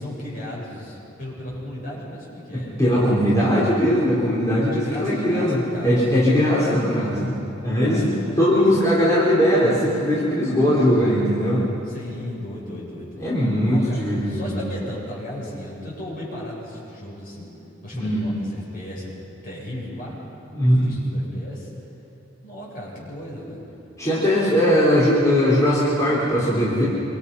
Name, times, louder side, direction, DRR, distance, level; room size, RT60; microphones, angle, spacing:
voice 1, 0.0-3.0 4.6-6.1 7.5-8.8 11.8-13.2 13.6-17.5 17.8-20.2 20.6-21.7 22.4-23.7, left 1 dB, 45° left, -5 dB, 8.0 m, -36 dB
voice 2, 2.5-7.3 7.6-11.6 13.2-14.6 17.9-18.3 20.5-20.9 24.0-26.9, equal, 15° left, -9 dB, 4.4 m, -20 dB
27.0 x 25.0 x 5.7 m, 2.9 s
head